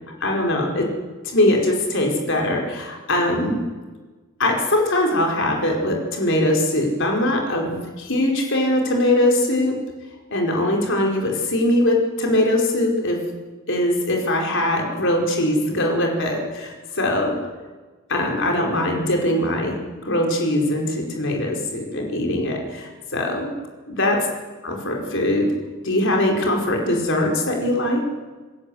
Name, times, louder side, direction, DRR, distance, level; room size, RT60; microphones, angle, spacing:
voice 1, 0.2-0.9 1.3-3.6 4.4-9.8 10.3-13.2 13.7-17.4 18.1-19.8 20.0-23.5 23.9-24.3 24.6-25.5 25.8-28.0, left 1 dB, 55° left, 1 dB, 4.9 m, -21 dB
27.5 x 15.5 x 8.0 m, 1.3 s
head